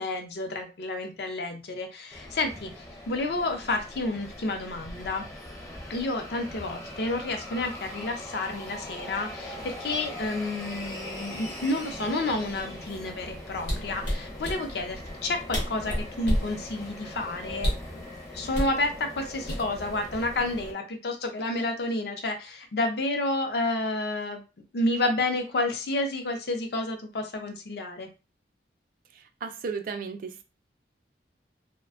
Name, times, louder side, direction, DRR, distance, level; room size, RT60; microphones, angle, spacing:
voice 1, 0.0-5.2 5.9-17.7 18.3-24.4 24.7-28.1, left 2 dB, 65° left, 4 dB, 0.5 m, -30 dB
sound 1, 2.1-20.7, left 1 dB, 20° left, 0.5 m, -41 dB
sound 2, 13.6-14.6 15.2-15.3 15.5-16.5 17.6-17.9 18.5-18.8 19.5-19.9 20.3-20.6, equal, 85° left, 0.9 m, -28 dB
voice 2, 29.1-30.4, right 5 dB, 50° right, 8 dB, 0.3 m, -35 dB
2.4 x 2.1 x 2.4 m, 0.30 s
head